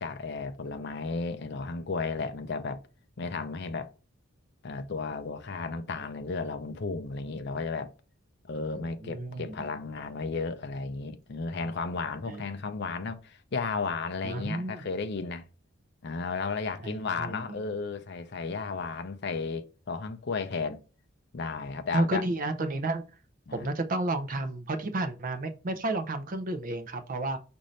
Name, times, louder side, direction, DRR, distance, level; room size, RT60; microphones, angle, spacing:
voice 1, 0.0-2.8 3.2-3.9 4.6-7.9 8.5-15.4 16.0-20.8 21.3-22.2 23.5-23.7, left 4 dB, 50° left, 0.5 m, -34 dB
voice 2, 8.7-9.7 12.3-12.4 14.2-14.8 16.8-17.6 21.9-23.0 23.5-27.4, right 2 dB, 40° right, 0.4 m, -32 dB
5.2 x 2.6 x 3.1 m
head